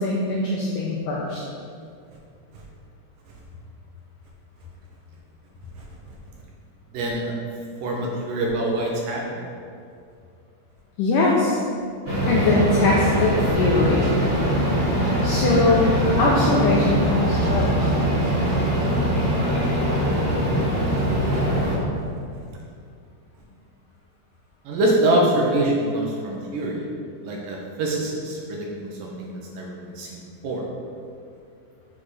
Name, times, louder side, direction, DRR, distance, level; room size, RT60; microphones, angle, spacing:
voice 1, 0.0-1.4 11.0-11.6 12.3-14.0 15.2-17.9, left 2 dB, 75° left, -4 dB, 2.1 m, -21 dB
voice 2, 6.9-7.3 7.8-9.5 24.7-26.9 27.2-30.6, right 1 dB, 70° right, -2 dB, 2.4 m, -25 dB
sound 1, 12.0-21.7, right 1 dB, 20° right, 0.9 m, -22 dB
7.8 x 6.5 x 4.8 m, 2.4 s
omnidirectional pair, 4.6 m